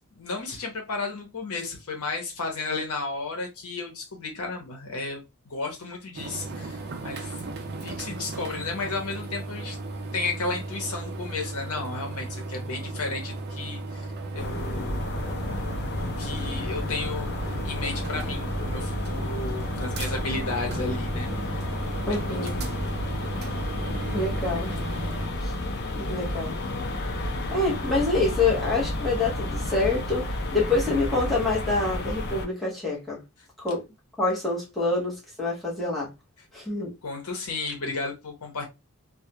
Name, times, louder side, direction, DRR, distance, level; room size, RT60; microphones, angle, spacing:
voice 1, 0.1-7.4 7.8-9.8 10.1-14.1 14.3-15.2 15.7-21.6 22.0-23.0 37.0-38.7, left 3 dB, 75° left, 0.9 m, -33 dB
sound 1, 6.1-25.3, right 2 dB, 50° right, 0.5 m, -35 dB
sound 2, 14.4-32.5, left 1 dB, 50° left, 0.5 m, -31 dB
voice 2, 22.1-22.6 24.1-24.7 25.4-25.5 25.9-26.6 27.5-33.2 33.6-33.8 34.2-36.1 36.5-36.9, left 3 dB, ahead, 0.9 m, -26 dB
2.3 x 2.1 x 2.7 m
head